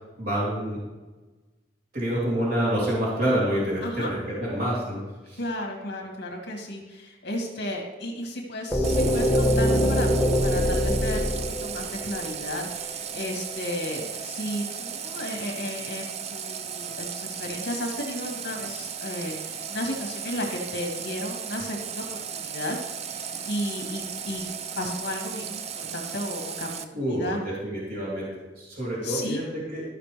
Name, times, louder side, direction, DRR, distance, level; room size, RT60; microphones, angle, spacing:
voice 1, 0.2-0.8 1.9-5.0 5.3-5.4 26.9-28.3 28.6-29.8, right 1 dB, 60° right, -7 dB, 3.1 m, -27 dB
voice 2, 3.8-4.1 5.4-10.1 10.4-24.5 24.8-25.6 25.9-27.4 29.0-29.4, left 1 dB, 65° left, 1 dB, 2.2 m, -34 dB
sound 1, 8.7-12.6, equal, ahead, 1.1 m, -23 dB
Water tap faucet, 8.8-26.8, right 7 dB, 35° right, 0.5 m, -36 dB
14.0 x 5.9 x 3.3 m, 1.2 s
head